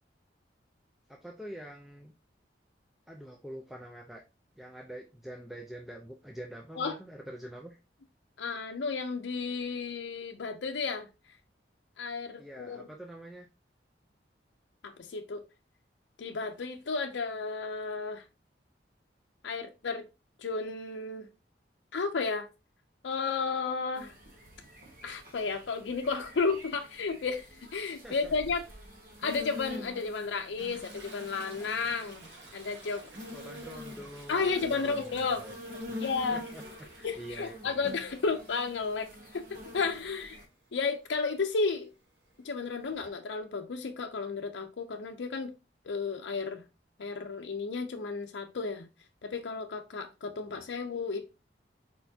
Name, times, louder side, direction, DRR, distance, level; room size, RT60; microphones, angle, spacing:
voice 1, 1.1-2.1 3.1-4.2 4.6-7.8 12.4-13.5 28.0-28.3 33.3-35.6 35.9-36.0 36.3-36.6 37.0-37.8, right 1 dB, ahead, 0.5 m, -45 dB
voice 2, 8.4-11.1 12.0-12.8 14.8-15.4 16.2-18.2 19.4-20.1 20.4-21.3 21.9-22.5 23.0-24.1 25.0-28.6 29.2-32.3 32.5-33.1 34.3-35.4 36.0-36.4 37.0-40.4 40.7-41.9 42.4-45.5 45.8-46.6 47.0-48.9 49.2-51.3, left 4 dB, 85° left, 0.5 m, -33 dB
sound 1, 24.0-40.4, left 2 dB, 50° right, 1.4 m, -46 dB
Toilet flush, 30.6-38.4 38.8-43.1, right 2 dB, 85° right, 1.9 m, -53 dB
4.4 x 4.3 x 2.7 m
head